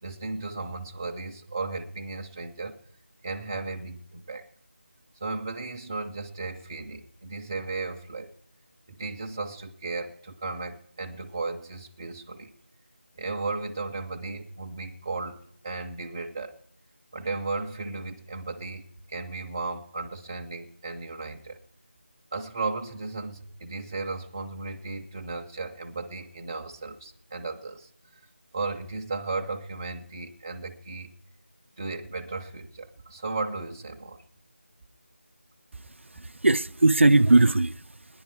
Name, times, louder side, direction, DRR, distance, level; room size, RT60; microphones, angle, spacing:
voice 1, 0.0-2.8 3.2-4.5 5.2-8.3 8.9-12.5 13.2-15.4 15.6-16.5 17.1-21.6 22.3-27.9 28.5-31.1 31.8-34.2, right 3 dB, 20° right, 0.5 m, -35 dB
voice 2, 35.7-38.2, right 2 dB, 80° right, 0.4 m, -21 dB
19.0 x 10.5 x 4.6 m
figure-of-eight pair, 170°, 7 cm